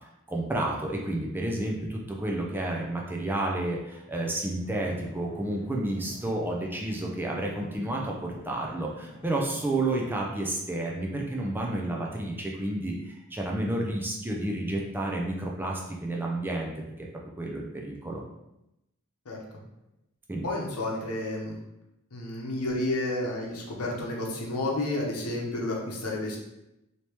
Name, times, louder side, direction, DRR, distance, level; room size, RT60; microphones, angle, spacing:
voice 1, 0.3-16.7 17.0-17.1 17.4-18.2 20.3-20.5, right 1 dB, 10° right, -1 dB, 0.4 m, -31 dB
sound 1, 4.6-10.2, equal, 30° left, 1.3 m, -46 dB
voice 2, 20.4-21.6 22.1-26.4, left 2 dB, 80° left, -2 dB, 0.8 m, -31 dB
3.3 x 2.8 x 2.9 m, 0.88 s
head